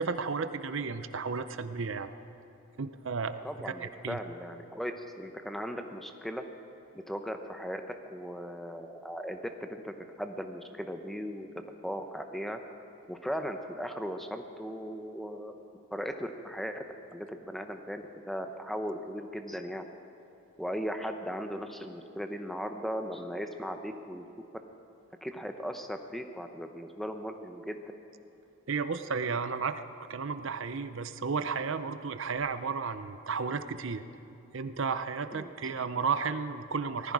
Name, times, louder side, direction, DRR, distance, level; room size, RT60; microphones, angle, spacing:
voice 1, 0.0-2.1 2.8-3.3 3.6-4.2 28.7-29.8 30.1-34.0 34.5-37.1, right 5 dB, 60° right, 11 dB, 0.6 m, -33 dB
voice 2, 3.4-6.4 7.1-7.8 8.1-12.6 13.1-15.6 15.9-16.8 17.1-19.8 20.6-24.3 25.2-27.8 35.3-35.5, equal, ahead, 6 dB, 0.7 m, -37 dB
19.0 x 14.5 x 4.8 m, 2.9 s
head